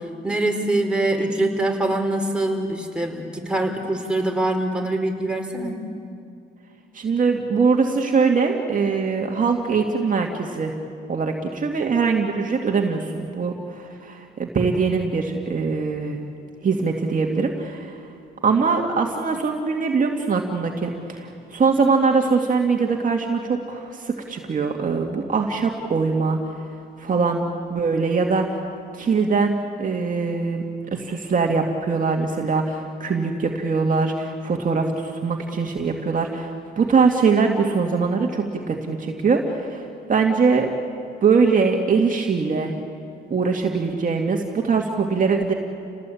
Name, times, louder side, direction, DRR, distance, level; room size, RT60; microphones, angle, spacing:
voice 1, 0.0-5.8, right 1 dB, 5° right, 1 dB, 4.3 m, -24 dB
voice 2, 6.9-10.7 11.1-16.2 16.6-18.0 18.4-26.5 27.0-28.6 28.9-30.6 30.9-40.7 41.2-42.8 43.3-45.5, right 4 dB, 40° right, 1 dB, 2.3 m, -22 dB
29.5 x 19.0 x 8.6 m, 2.4 s
cardioid pair, 90°, 20 cm